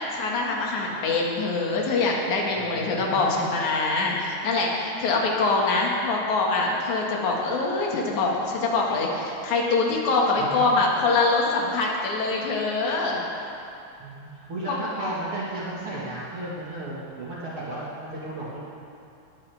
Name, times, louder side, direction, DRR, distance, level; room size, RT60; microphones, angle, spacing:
voice 1, 0.1-13.2 14.7-14.8, left 3 dB, 65° left, -2 dB, 3.2 m, -24 dB
voice 2, 2.5-3.5 10.4-10.7 14.0-18.6, right 2 dB, 45° right, -8 dB, 2.5 m, -34 dB
20.0 x 14.5 x 3.5 m, 2.7 s
omnidirectional pair, 3.7 m